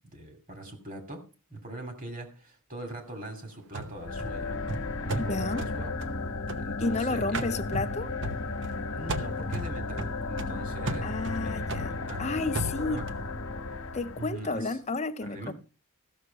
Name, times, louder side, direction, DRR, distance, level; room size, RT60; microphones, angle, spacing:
voice 1, 0.1-1.2 1.5-4.6 5.0-5.9 6.6-7.6 8.9-11.1 11.4-12.4 12.8-13.0 14.2-14.8 15.2-15.5, right 1 dB, 40° right, 2.7 m, -42 dB
sound 1, 3.7-7.0 7.3-8.8 9.1-13.2, right 1 dB, 55° right, 1.0 m, -36 dB
sound 2, 4.0-14.5, left 3 dB, 65° left, 1.3 m, -34 dB
voice 2, 5.3-5.6 6.8-8.1 11.0-13.1 13.9-15.5, left 3 dB, 30° left, 0.8 m, -31 dB
14.5 x 6.6 x 5.3 m
head